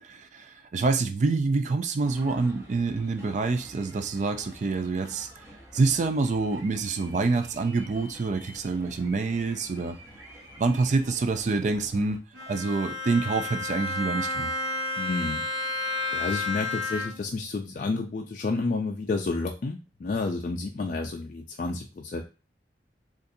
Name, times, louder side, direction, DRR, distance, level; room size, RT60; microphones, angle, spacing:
voice 1, 0.0-5.5 5.7-10.0 10.6-14.5, right 3 dB, 40° right, 0.3 m, -27 dB
sound 1, 2.0-12.2, right 1 dB, 15° right, 0.7 m, -49 dB
Bowed string instrument, 12.3-17.4, left 3 dB, 65° right, 0.9 m, -31 dB
voice 2, 15.0-15.4 16.1-22.2, left 3 dB, 45° left, 0.3 m, -30 dB
3.9 x 2.4 x 2.6 m
head